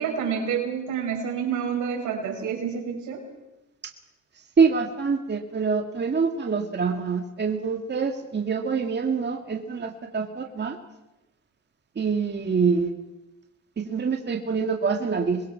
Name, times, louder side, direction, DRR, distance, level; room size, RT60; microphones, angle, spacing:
voice 1, 0.0-3.3, right 7 dB, 85° right, 1 dB, 6.1 m, -28 dB
voice 2, 4.6-10.8 12.0-13.0 13.8-15.5, right 5 dB, 35° right, 3 dB, 2.2 m, -25 dB
26.5 x 22.0 x 6.0 m, 0.95 s
cardioid pair, 90°, 30 cm